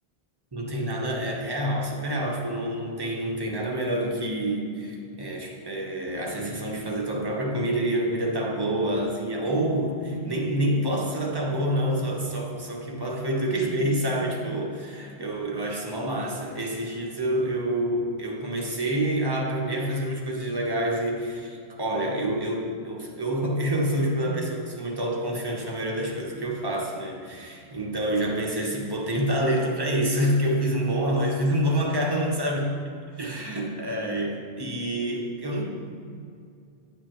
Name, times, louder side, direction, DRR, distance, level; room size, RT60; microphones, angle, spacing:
voice 1, 0.5-32.8 33.2-35.6, right 1 dB, 25° right, -2 dB, 1.0 m, -27 dB
9.4 x 7.3 x 3.0 m, 2.4 s
omnidirectional pair, 1.1 m